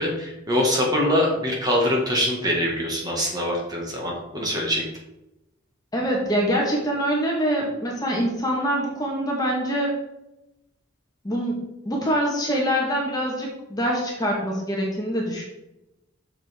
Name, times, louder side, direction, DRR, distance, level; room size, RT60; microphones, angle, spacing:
voice 1, 0.0-4.8, left 1 dB, 20° right, -2 dB, 1.8 m, -23 dB
voice 2, 5.9-10.0 11.2-15.4, equal, 20° left, -2 dB, 1.3 m, -24 dB
7.1 x 6.7 x 3.6 m, 0.91 s
head